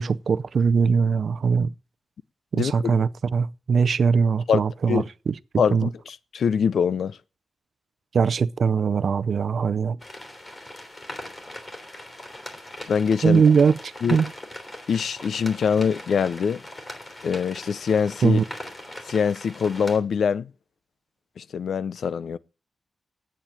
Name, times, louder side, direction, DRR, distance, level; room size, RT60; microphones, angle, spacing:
voice 1, 0.0-1.7 2.5-5.3 5.7-5.9 8.1-10.0 13.2-14.3 18.2-18.4, right 5 dB, 65° right, 0.6 m, -21 dB
voice 2, 2.5-2.9 4.5-4.6 4.9-5.1 5.6-7.2 12.9-13.4 14.0-14.2 14.9-16.6 17.2-18.4 19.1-20.5 21.4-22.4, left 6 dB, 90° left, 0.6 m, -24 dB
sound 1, 10.0-20.0, left 1 dB, 30° left, 3.3 m, -40 dB
10.0 x 8.8 x 9.0 m
wide cardioid pair, 110°, 0 cm